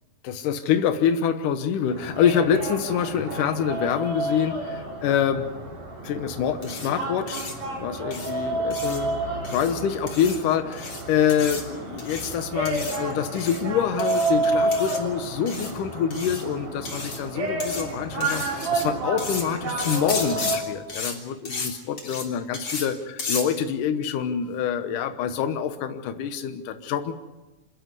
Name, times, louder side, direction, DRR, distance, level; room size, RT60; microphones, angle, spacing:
voice 1, 0.2-5.5 6.0-7.5 7.8-27.1, left 8 dB, 85° left, 8 dB, 2.7 m, -26 dB
sound 1, 1.9-20.6, right 2 dB, 75° right, 5.9 m, -30 dB
sound 2, 6.6-6.9 7.3-7.5 8.1-8.3 8.7-9.0 9.4-9.7 10.1-10.4 10.7-11.0 11.3-11.6 12.0-12.4 12.7-13.0 13.4-13.6 14.0-14.3 14.7-15.0 15.5-15.7 16.1-16.4 16.9-17.2 17.6-17.8 18.2-18.8 19.2-19.4 19.8-20.6 20.9-21.1 21.5-21.7 22.0-22.3 22.5-22.9 23.2-23.4, left 3 dB, 40° left, 4.2 m, -33 dB
27.5 x 13.5 x 9.7 m, 1.1 s
omnidirectional pair, 3.6 m